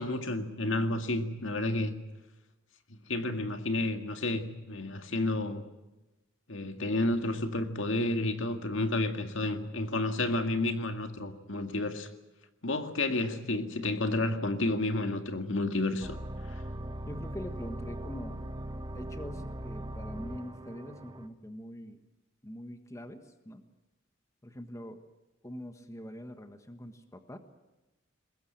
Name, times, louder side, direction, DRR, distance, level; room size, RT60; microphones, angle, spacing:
voice 1, 0.0-1.9 3.1-5.6 6.5-12.1 12.6-16.2 16.5-16.6, left 2 dB, 70° left, 7 dB, 2.1 m, -31 dB
voice 2, 13.1-13.4 17.1-18.4 18.9-22.0 22.4-23.6 24.4-25.0 25.4-27.4, equal, 15° left, 7 dB, 1.4 m, -44 dB
sound 1, 16.0-21.3, right 1 dB, 20° right, 1.4 m, -40 dB
22.5 x 20.5 x 8.8 m, 1.0 s
head